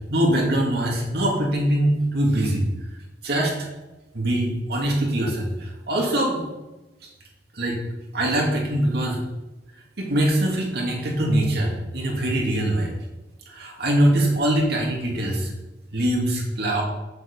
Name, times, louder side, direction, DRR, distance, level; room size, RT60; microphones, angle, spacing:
voice 1, 0.1-2.7 3.2-3.5 4.1-6.4 7.5-7.8 8.1-9.2 10.0-12.9 13.5-15.5 15.9-16.8, right 1 dB, 60° right, -1 dB, 2.3 m, -23 dB
7.6 x 7.6 x 5.3 m, 1.1 s
head